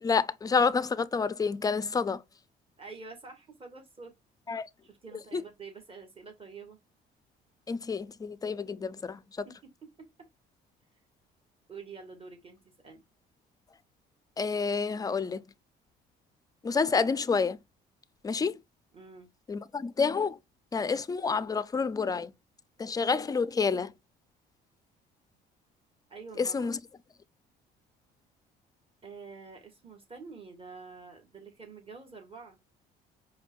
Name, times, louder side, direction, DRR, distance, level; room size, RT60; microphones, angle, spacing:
voice 1, 0.0-2.2 4.5-4.7 5.3-5.4 7.7-9.5 14.4-15.4 16.6-17.6 18.2-18.6 19.5-20.4 20.7-22.3 22.8-23.9 26.4-26.8, left 5 dB, 20° left, 0.4 m, -28 dB
voice 2, 2.8-4.1 4.8-6.8 9.4-10.3 11.7-13.0 18.9-19.3 26.1-26.7 29.0-32.6, right 4 dB, 30° right, 1.6 m, -47 dB
5.0 x 2.3 x 2.5 m
supercardioid pair, 80°, 19 cm